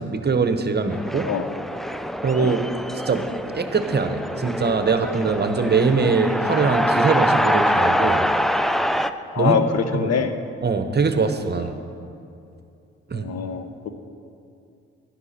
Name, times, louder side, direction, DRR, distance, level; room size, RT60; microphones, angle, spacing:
voice 1, 0.0-1.3 2.2-2.6 3.1-3.3 3.5-8.3 9.4-9.6 9.9-10.1 10.6-11.7 13.1-13.3, right 4 dB, 35° right, 8 dB, 1.0 m, -22 dB
sound 1, 0.9-9.1, equal, ahead, 0.4 m, -24 dB
voice 2, 9.3-10.3 11.6-11.7 13.1-13.7, left 7 dB, 60° left, 8 dB, 0.9 m, -23 dB
11.5 x 11.0 x 4.3 m, 2.6 s
supercardioid pair, 55°, 29 cm